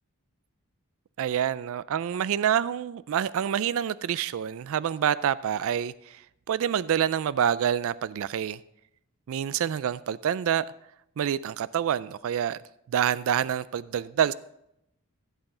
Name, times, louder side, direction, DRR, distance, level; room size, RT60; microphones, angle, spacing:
voice 1, 1.2-6.2 6.5-8.6 9.3-10.7 11.2-12.6 12.9-14.3, right 9 dB, 65° right, 0.3 m, -27 dB
15.5 x 8.2 x 3.8 m
head